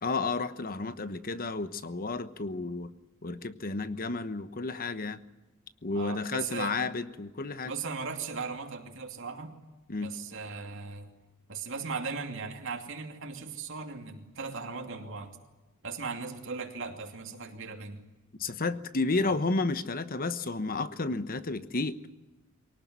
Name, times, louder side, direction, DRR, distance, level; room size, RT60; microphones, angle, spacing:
voice 1, 0.0-2.9 3.2-5.2 5.8-7.7 9.9-10.1 18.4-22.0, left 3 dB, 40° left, 1.1 m, -32 dB
voice 2, 5.9-6.8 7.7-9.5 10.0-11.1 11.5-15.4 15.8-18.0 19.2-19.4, right 4 dB, 60° right, 2.7 m, -38 dB
23.5 x 18.5 x 9.6 m
head